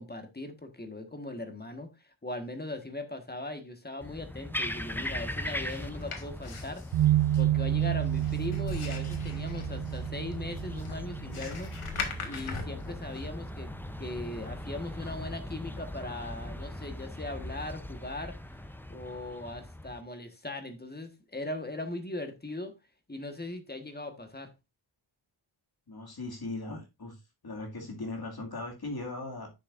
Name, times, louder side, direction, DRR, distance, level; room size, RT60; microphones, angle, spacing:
voice 1, 0.0-11.7 12.2-13.7 14.0-18.3 18.9-22.7 23.1-24.5, left 2 dB, 20° left, 1.4 m, -39 dB
sound 1, 4.0-20.0, left 1 dB, 5° left, 0.6 m, -40 dB
sound 2, 5.7-13.3, left 5 dB, 85° left, 1.7 m, -42 dB
sound 3, 6.9-14.0, right 13 dB, 70° right, 0.5 m, -31 dB
voice 2, 25.9-27.2 27.4-29.5, left 2 dB, 50° left, 2.3 m, -38 dB
10.5 x 6.5 x 2.5 m
wide cardioid pair, 100°, 49 cm